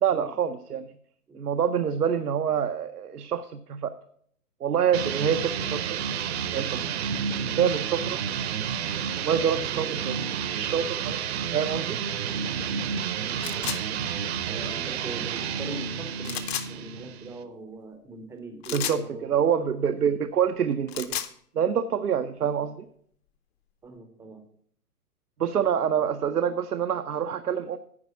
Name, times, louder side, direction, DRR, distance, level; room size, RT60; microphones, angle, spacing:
voice 1, 0.0-0.9 1.4-3.9 4.6-6.0 6.5-6.8 7.6-8.2 9.2-10.2 10.5-12.0 18.7-21.2 21.5-22.9 25.4-27.8, right 8 dB, 85° right, 8 dB, 0.7 m, -26 dB
sound 1, 4.9-17.4, right 7 dB, 45° right, 0.7 m, -30 dB
voice 2, 13.2-13.8 14.5-19.3 23.8-24.4 25.6-25.7, right 3 dB, 5° right, 6 dB, 0.5 m, -41 dB
sound 2, 13.4-13.8 16.2-16.7 18.6-19.0 20.7-21.3, left 11 dB, 45° left, 0.8 m, -32 dB
9.7 x 4.6 x 7.2 m, 0.63 s
figure-of-eight pair, 125°, 45 cm